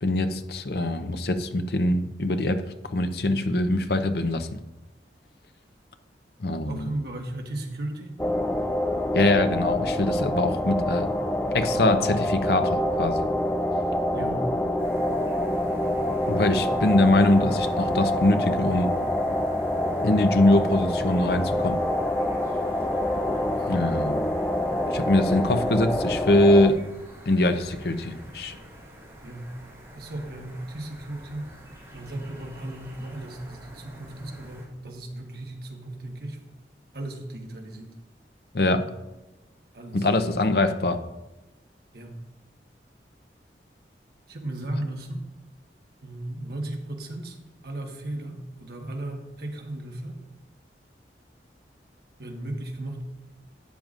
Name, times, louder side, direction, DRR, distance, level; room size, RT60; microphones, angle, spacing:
voice 1, 0.0-4.6 6.4-6.9 9.1-11.1 11.5-13.2 16.3-18.9 20.0-21.8 23.7-24.3 24.9-26.9 27.3-28.6 38.5-38.9 39.9-41.0, left 1 dB, 65° left, 8 dB, 0.7 m, -23 dB
voice 2, 6.6-8.2 14.1-14.5 23.6-23.7 29.2-29.5 29.9-31.5 31.9-36.5 36.9-37.9 39.7-40.1 41.9-42.1 44.3-45.2 46.0-50.2 52.2-53.0, right 1 dB, 60° right, 1 dB, 1.4 m, -35 dB
sound 1, 8.2-26.7, left 1 dB, 10° left, 0.4 m, -26 dB
sound 2, 14.8-34.7, equal, 15° right, 3.3 m, -48 dB
12.0 x 9.0 x 2.5 m, 1.0 s
head